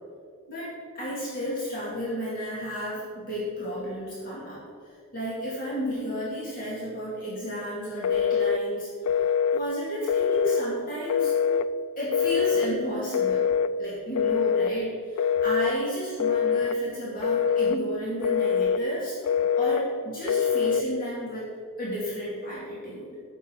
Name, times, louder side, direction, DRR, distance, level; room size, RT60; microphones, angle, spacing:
voice 1, 0.5-4.6 5.1-8.9 9.5-11.3 12.0-13.5 13.8-19.2 19.5-21.5 21.8-23.1, equal, 40° left, -8 dB, 2.2 m, -32 dB
Telephone, 8.0-8.6 9.1-9.6 10.1-10.7 11.1-11.7 12.1-12.7 13.1-13.7 14.2-14.7 15.2-15.8 16.2-16.8 17.2-17.8 18.2-18.8 19.3-19.8 20.3-20.9, left 7 dB, 85° left, 0.3 m, -24 dB
9.2 x 6.8 x 4.5 m, 2.1 s
head